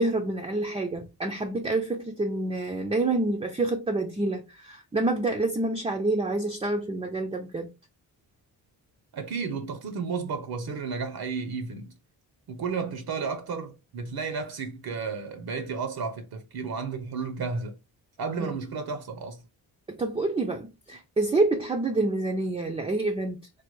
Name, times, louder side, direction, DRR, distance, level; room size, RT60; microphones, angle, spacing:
voice 1, 0.0-7.7 18.4-18.5 19.9-23.4, right 2 dB, 15° right, 0.4 m, -27 dB
voice 2, 9.1-11.9 12.5-17.8 18.2-19.4, right 5 dB, 65° right, 0.7 m, -32 dB
3.2 x 2.1 x 3.0 m
cardioid pair, 115°, 40 cm